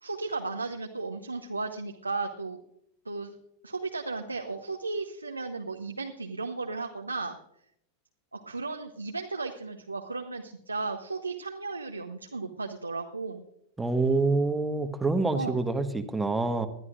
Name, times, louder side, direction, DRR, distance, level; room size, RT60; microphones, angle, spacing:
voice 1, 0.0-2.6 3.0-3.3 3.6-7.4 8.3-13.4 15.3-15.6, right 3 dB, 80° right, 4 dB, 0.9 m, -35 dB
voice 2, 13.8-16.7, right 3 dB, 10° right, 7 dB, 1.2 m, -26 dB
21.0 x 12.5 x 2.5 m, 0.72 s
figure-of-eight pair, 90°, 0 cm